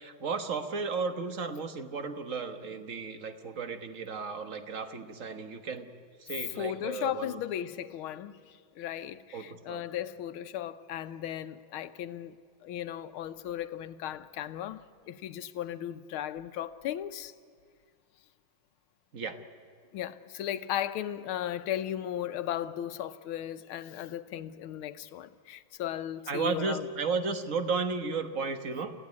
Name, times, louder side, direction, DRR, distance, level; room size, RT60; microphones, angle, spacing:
voice 1, 0.0-5.9 6.2-7.4 9.3-9.8 19.1-19.4 26.3-28.9, right 4 dB, 45° right, 1.4 m, -34 dB
voice 2, 6.6-12.4 12.6-17.3 19.9-26.9, left 11 dB, 90° left, 1.7 m, -36 dB
28.5 x 15.5 x 9.6 m
omnidirectional pair, 2.2 m